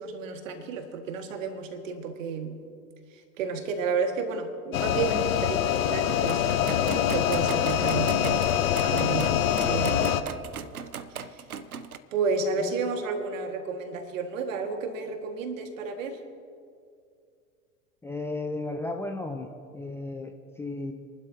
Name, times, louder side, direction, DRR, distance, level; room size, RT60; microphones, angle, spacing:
voice 1, 0.0-2.6 3.4-6.7 7.1-8.5 8.8-10.2 11.3-11.4 12.1-16.2, right 5 dB, 60° right, 6 dB, 1.8 m, -31 dB
sound 1, 4.7-10.2, left 10 dB, 70° left, 0.8 m, -25 dB
sound 2, 6.3-12.0, right 7 dB, 80° right, 0.7 m, -37 dB
voice 2, 12.4-12.8 18.0-20.9, left 2 dB, 5° left, 4 dB, 0.5 m, -35 dB
27.0 x 12.0 x 2.7 m, 2.3 s
figure-of-eight pair, 85°, 43 cm